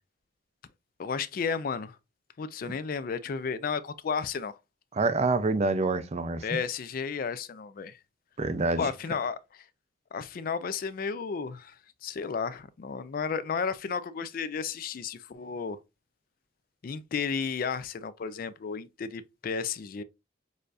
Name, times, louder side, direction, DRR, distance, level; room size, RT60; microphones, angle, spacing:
voice 1, 1.0-2.0 2.4-4.5 6.4-8.0 8.8-9.7 10.1-15.8 16.8-20.0, left 5 dB, 45° left, 0.3 m, -33 dB
voice 2, 4.9-6.4 8.4-8.9, right 3 dB, 35° right, 0.4 m, -26 dB
6.5 x 2.6 x 2.4 m
head